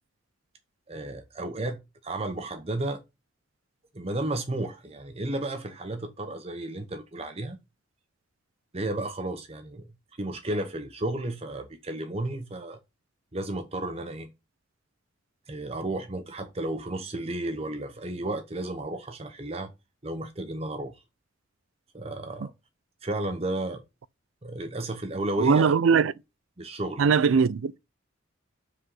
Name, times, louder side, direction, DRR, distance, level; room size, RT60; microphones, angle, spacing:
voice 1, 0.9-3.0 3.9-7.6 8.7-9.9 10.2-12.8 13.3-14.3 15.5-19.7 20.0-21.0 21.9-22.5 23.0-23.8 24.4-25.7 26.6-27.1, right 1 dB, 30° right, 0.8 m, -33 dB
voice 2, 25.4-26.1 27.0-27.8, right 5 dB, 85° right, 0.4 m, -21 dB
6.3 x 5.0 x 5.5 m
head